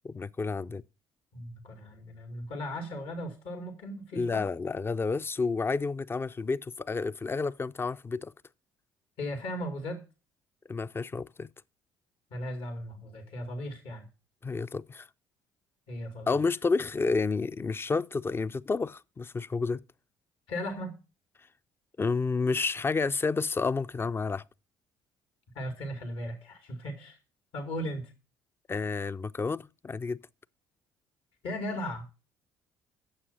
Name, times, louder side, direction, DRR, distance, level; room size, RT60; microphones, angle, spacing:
voice 1, 0.0-0.8 4.1-8.3 10.7-11.5 14.4-15.1 16.3-19.8 22.0-24.4 28.7-30.2, left 4 dB, 25° left, 0.4 m, -30 dB
voice 2, 1.3-4.5 9.2-10.0 12.3-14.1 15.9-16.4 20.5-20.9 25.5-27.2 27.5-28.1 31.4-32.0, equal, 70° left, 2.3 m, -37 dB
8.8 x 7.2 x 5.5 m
hypercardioid pair, 60°, 10 cm